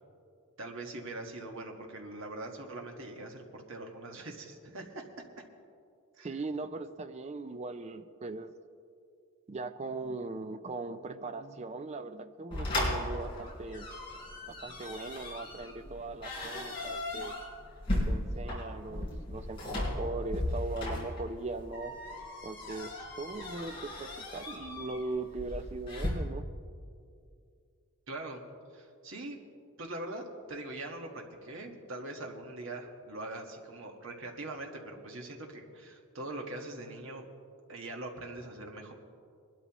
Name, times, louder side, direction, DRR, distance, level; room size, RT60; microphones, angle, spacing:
voice 1, 0.6-5.4 6.2-6.3 28.1-28.4 28.7-29.4 29.8-37.3 37.7-38.9, right 2 dB, 60° right, 2 dB, 1.6 m, -42 dB
voice 2, 6.2-8.5 9.5-13.9 14.5-17.4 17.9-21.9 22.4-26.4, right 3 dB, 30° right, 10 dB, 0.4 m, -39 dB
sound 1, 12.5-26.1, left 1 dB, 25° left, 4.0 m, -36 dB
22.0 x 12.5 x 3.0 m, 2.4 s
head